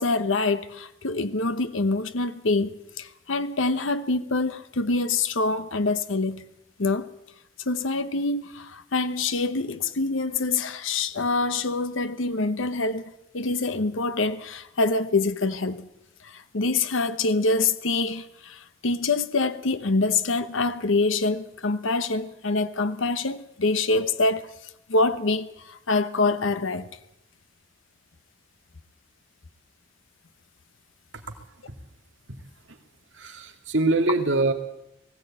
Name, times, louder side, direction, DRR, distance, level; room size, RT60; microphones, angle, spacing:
voice 1, 0.0-6.4 6.8-7.1 7.7-15.9 16.2-24.5 24.9-26.9, left 3 dB, 85° left, 1.0 m, -25 dB
voice 2, 33.1-34.5, right 2 dB, 70° right, 2.5 m, -24 dB
19.5 x 16.5 x 8.8 m
head